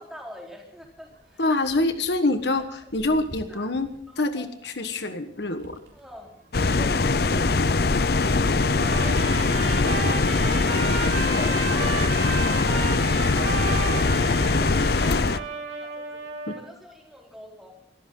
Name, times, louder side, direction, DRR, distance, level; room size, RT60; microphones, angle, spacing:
voice 1, 0.0-1.4 3.5-3.7 4.1-4.5 5.9-6.3 14.7-17.7, equal, ahead, -1 dB, 4.1 m, -46 dB
sound 1, 0.8-13.0, equal, 70° right, 4.0 m, -47 dB
voice 2, 1.4-3.9 4.2-5.8 16.5-16.6, left 2 dB, 70° left, 8 dB, 1.4 m, -25 dB
sound 2, 6.5-15.4, left 3 dB, 55° left, 0.6 m, -22 dB
Trumpet, 8.7-16.6, right 5 dB, 90° right, 3.5 m, -33 dB
26.5 x 14.0 x 3.9 m, 0.71 s
head